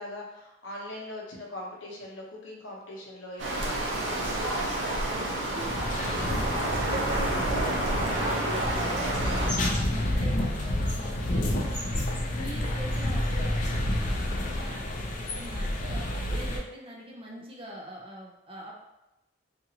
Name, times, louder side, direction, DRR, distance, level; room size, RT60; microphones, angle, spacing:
voice 1, 0.0-4.9, left 1 dB, 70° left, -3 dB, 0.8 m, -41 dB
sound 1, 3.4-9.5, right 1 dB, 70° right, 0.6 m, -29 dB
voice 2, 5.1-9.2 9.5-12.1 12.3-16.1 16.3-18.8, equal, 30° right, -2 dB, 0.5 m, -44 dB
sound 2, 5.6-16.6, left 1 dB, 40° left, 0.4 m, -30 dB
sound 3, 8.9-14.2, left 1 dB, 10° left, 1.3 m, -43 dB
2.8 x 2.5 x 2.7 m, 0.92 s
head